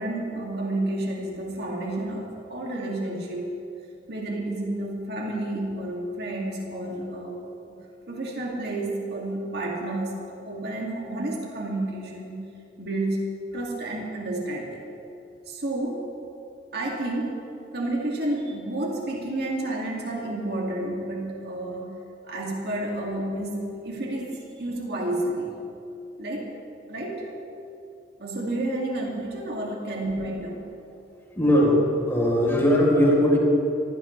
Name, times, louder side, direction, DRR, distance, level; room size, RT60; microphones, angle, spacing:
voice 1, 0.0-3.6 4.1-7.4 7.7-7.8 8.1-12.5 12.8-14.9 15.5-16.1 16.7-17.5 17.7-22.0 22.3-25.7 26.2-26.5 26.9-27.3 28.2-30.6, right 1 dB, 65° right, -2 dB, 2.4 m, -30 dB
voice 2, 31.3-33.4, equal, 15° left, -3 dB, 4.0 m, -19 dB
24.0 x 16.5 x 3.3 m, 2.6 s
head